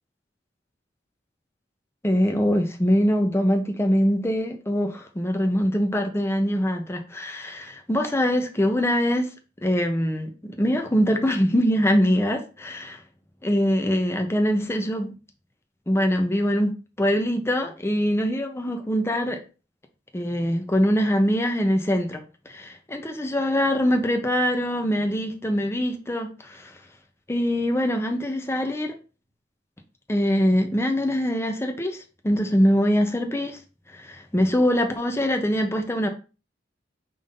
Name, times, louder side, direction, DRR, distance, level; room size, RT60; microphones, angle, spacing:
voice 1, 2.0-9.3 9.6-13.0 13.4-15.1 15.9-19.4 20.1-26.7 27.3-28.9 30.1-33.6 33.9-36.1, equal, 15° left, 0.7 m, -23 dB
5.4 x 2.7 x 3.7 m
head